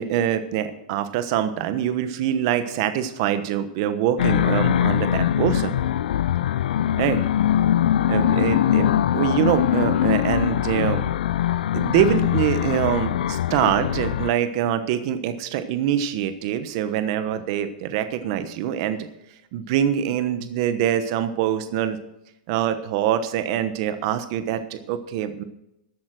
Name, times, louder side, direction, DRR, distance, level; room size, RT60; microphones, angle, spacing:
voice 1, 0.0-5.7 7.0-7.2 8.1-11.1 11.7-19.1 19.5-22.0 22.5-25.4, right 10 dB, 30° right, 10 dB, 1.1 m, -24 dB
sound 1, 4.2-14.3, left 11 dB, 70° left, 0.4 m, -22 dB
13.5 x 8.2 x 6.3 m, 0.83 s
supercardioid pair, 180°, 5 cm